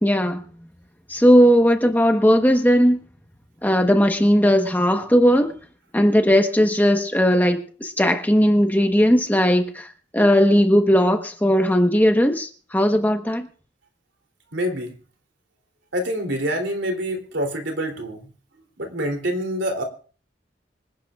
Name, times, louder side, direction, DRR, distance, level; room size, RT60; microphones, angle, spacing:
voice 1, 0.0-0.4 1.1-3.0 3.6-5.5 5.9-9.9 10.1-13.5, equal, 10° left, 1.1 m, -17 dB
voice 2, 14.5-15.0 15.9-18.3 18.8-19.8, equal, 85° right, 3.2 m, -26 dB
26.0 x 10.5 x 2.4 m
head